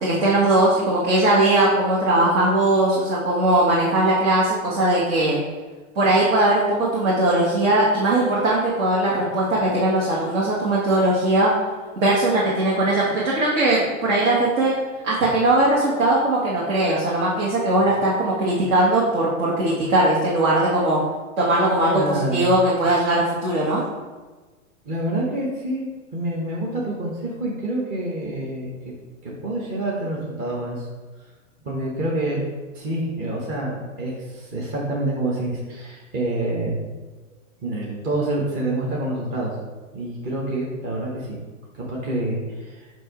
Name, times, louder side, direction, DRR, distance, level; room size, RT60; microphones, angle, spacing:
voice 1, 0.0-5.4 6.0-11.5 12.0-14.7 15.0-21.0 21.4-23.8, right 1 dB, 60° right, -6 dB, 1.6 m, -19 dB
voice 2, 21.9-22.5 24.9-25.9 26.1-28.7 29.2-30.9 31.6-32.4 32.7-36.8 37.6-39.6 39.9-41.4 41.7-42.9, right 1 dB, 20° right, -4 dB, 0.9 m, -27 dB
7.5 x 2.7 x 5.1 m, 1.3 s
hypercardioid pair, 155°, 41 cm